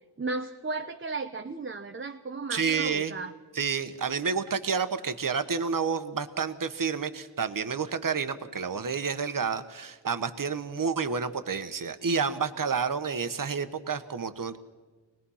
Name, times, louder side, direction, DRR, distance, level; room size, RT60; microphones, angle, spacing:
voice 1, 0.2-3.3, right 3 dB, 25° right, 5 dB, 0.8 m, -35 dB
voice 2, 2.5-3.1 3.5-14.6, right 5 dB, 45° right, 10 dB, 1.3 m, -29 dB
25.5 x 19.5 x 5.7 m, 1.3 s
wide cardioid pair, 95°, 44 cm